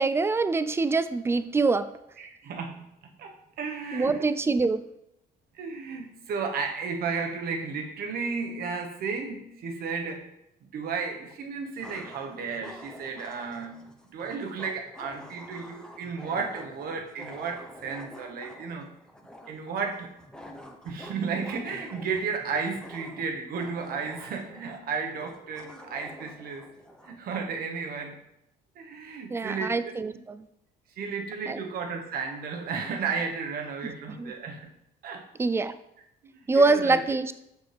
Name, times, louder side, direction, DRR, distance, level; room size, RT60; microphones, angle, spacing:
voice 1, 0.0-1.9 3.9-4.8 29.3-30.4 31.5-31.6 34.2-34.3 35.4-35.7 36.5-37.3, right 3 dB, 15° right, 13 dB, 0.4 m, -24 dB
voice 2, 2.2-2.8 3.2-4.3 5.5-10.3 10.7-18.9 19.5-20.1 20.8-26.7 27.0-28.2 28.8-30.1 31.0-34.7 35.0-35.3 36.2-37.0, right 5 dB, 65° right, 3 dB, 1.2 m, -33 dB
sound 1, 10.8-10.9 11.8-27.2, equal, 5° left, 0.8 m, -47 dB
6.7 x 6.1 x 3.4 m, 0.80 s
cardioid pair, 110°, 17 cm